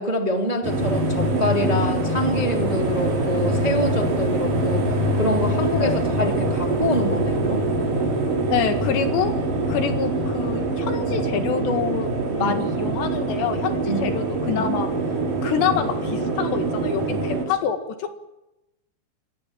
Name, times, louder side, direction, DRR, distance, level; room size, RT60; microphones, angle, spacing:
voice 1, 0.0-4.9 5.1-7.6 12.4-12.6 13.9-14.1, equal, 15° right, 2 dB, 1.6 m, -25 dB
sound 1, 0.6-17.4, right 2 dB, 50° right, 5.9 m, -24 dB
voice 2, 8.5-9.3 9.7-12.1 12.4-14.9 15.4-18.1, left 8 dB, 75° left, 7 dB, 4.1 m, -26 dB
28.5 x 23.0 x 7.5 m, 0.94 s
omnidirectional pair, 5.2 m